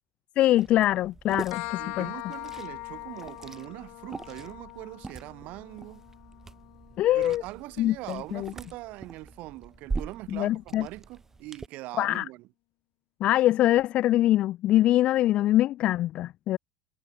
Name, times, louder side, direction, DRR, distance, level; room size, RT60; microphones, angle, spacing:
voice 1, 0.4-2.1 7.0-7.4 7.8-8.5 10.3-10.9 12.0-12.2 13.2-16.6, left 14 dB, 45° left, 0.3 m, -23 dB
Liquid, 0.6-11.7, right 4 dB, 15° right, 1.6 m, -42 dB
sound 1, 1.5-8.9, left 28 dB, 75° left, 2.5 m, -42 dB
voice 2, 1.8-6.0 7.1-12.5, right 20 dB, 65° right, 2.3 m, -42 dB
cardioid pair, 150°, 3 cm